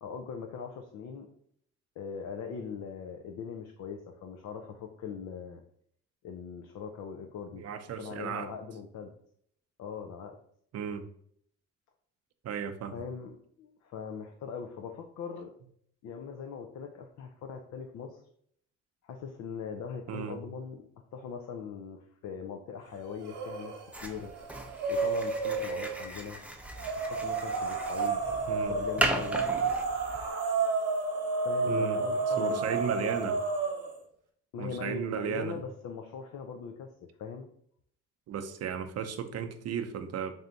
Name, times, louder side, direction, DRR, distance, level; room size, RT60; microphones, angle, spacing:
voice 1, 0.0-1.3 2.0-5.6 6.2-9.1 9.8-10.3 12.9-15.5 16.0-18.2 19.0-20.8 21.1-23.7 24.0-24.3 24.9-26.4 27.1-29.4 31.4-33.4 34.5-36.9 37.2-37.5, left 6 dB, 70° left, 3 dB, 0.5 m, -41 dB
voice 2, 7.5-8.5 10.7-11.0 12.4-12.9 20.1-20.4 28.5-28.7 31.7-32.0 32.3-33.4 34.6-35.6 38.3-40.3, right 8 dB, 55° right, 8 dB, 0.5 m, -35 dB
sound 1, 23.2-23.8 24.2-26.0 26.8-33.9, right 4 dB, 85° right, 0.9 m, -31 dB
sound 2, 23.9-30.3, right 1 dB, 5° right, 0.5 m, -36 dB
3.4 x 2.7 x 3.8 m, 0.66 s
cardioid pair, 90°, 30 cm